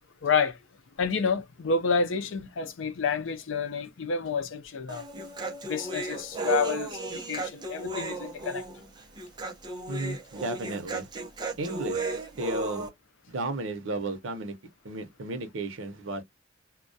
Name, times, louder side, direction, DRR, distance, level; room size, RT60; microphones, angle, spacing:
voice 1, 0.2-0.6 1.0-5.0 5.6-8.6, left 5 dB, 75° left, 0.5 m, -29 dB
Human voice, 4.9-12.9, right 3 dB, 20° right, 0.5 m, -35 dB
voice 2, 9.9-11.1 11.6-12.0 12.4-12.9 13.3-14.5 14.8-16.2, right 2 dB, 80° right, 0.7 m, -33 dB
2.2 x 2.1 x 2.6 m
head